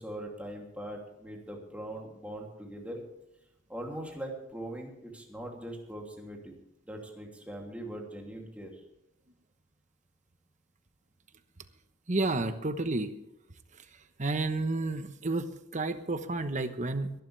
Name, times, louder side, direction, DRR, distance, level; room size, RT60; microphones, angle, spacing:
voice 1, 0.0-3.0 3.7-6.5 6.8-8.8, right 1 dB, 5° right, 0 dB, 2.9 m, -41 dB
voice 2, 12.1-13.1 14.2-17.1, right 2 dB, 40° right, 9 dB, 1.1 m, -31 dB
22.0 x 11.5 x 3.4 m, 0.86 s
head